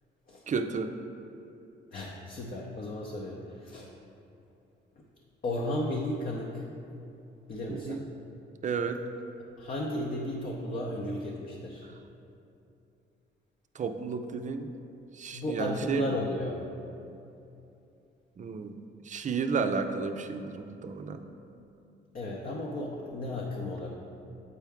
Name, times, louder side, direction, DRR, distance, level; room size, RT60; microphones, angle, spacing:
voice 1, 0.5-0.9 7.7-8.0 8.6-9.0 13.8-14.7 15.2-16.1 18.4-18.8 19.1-21.2, right 5 dB, 40° right, 7 dB, 0.4 m, -32 dB
voice 2, 1.9-3.9 5.4-6.6 7.5-8.1 9.6-11.9 15.3-16.6 22.1-23.9, left 1 dB, 45° left, -2 dB, 0.7 m, -34 dB
8.4 x 4.5 x 3.5 m, 2.7 s
cardioid pair, 90°, 20 cm